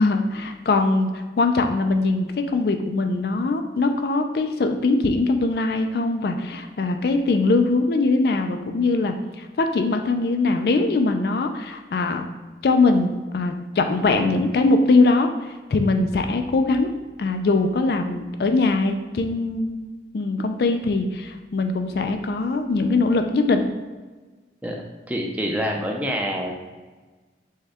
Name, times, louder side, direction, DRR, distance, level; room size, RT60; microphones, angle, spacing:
voice 1, 0.0-12.3 12.6-16.9 17.2-19.8 20.1-23.7, left 3 dB, 55° left, 6 dB, 0.3 m, -21 dB
voice 2, 25.1-26.5, equal, 10° right, 0 dB, 0.5 m, -26 dB
6.3 x 2.2 x 3.4 m, 1.3 s
head